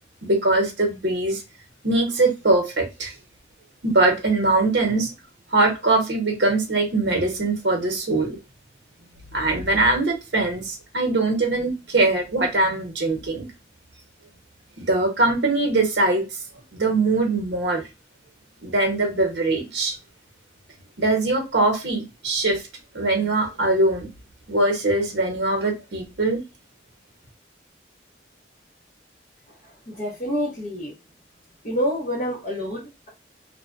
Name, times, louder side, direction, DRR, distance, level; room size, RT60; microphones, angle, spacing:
voice 1, 0.2-1.4 1.8-3.1 3.8-5.1 5.5-8.4 9.3-13.5 14.8-16.2 16.7-17.8 18.6-19.9 21.0-22.7 22.9-24.1 24.5-26.4, right 2 dB, 75° right, 0.8 m, -22 dB
voice 2, 29.9-30.9 31.6-33.1, equal, 40° left, 0.8 m, -27 dB
2.6 x 2.1 x 2.3 m
head